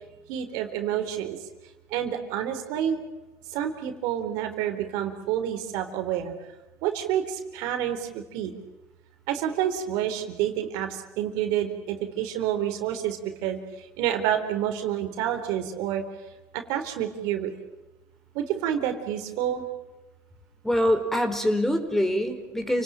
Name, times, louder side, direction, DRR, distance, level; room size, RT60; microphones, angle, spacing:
voice 1, 0.3-1.4 1.9-3.0 3.5-6.3 6.8-8.5 9.3-16.0 16.5-17.5 18.3-19.6, right 10 dB, 80° right, 6 dB, 3.8 m, -28 dB
voice 2, 20.6-22.8, equal, 5° left, 7 dB, 4.3 m, -24 dB
29.0 x 19.5 x 9.0 m, 1.1 s
supercardioid pair, 95°, 6 cm